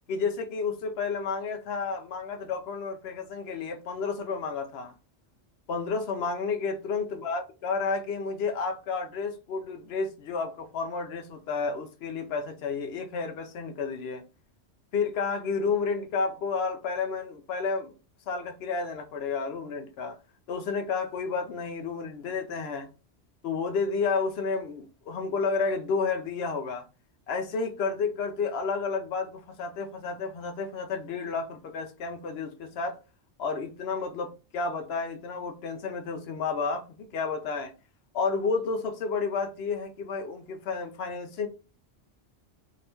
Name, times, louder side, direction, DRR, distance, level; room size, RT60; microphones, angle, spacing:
voice 1, 0.1-4.9 5.7-14.2 14.9-17.9 18.3-20.2 20.5-22.9 23.4-26.8 27.3-33.0 33.4-37.7 38.1-41.5, left 4 dB, 65° left, 0.7 m, -31 dB
2.7 x 2.5 x 3.4 m
omnidirectional pair, 1.2 m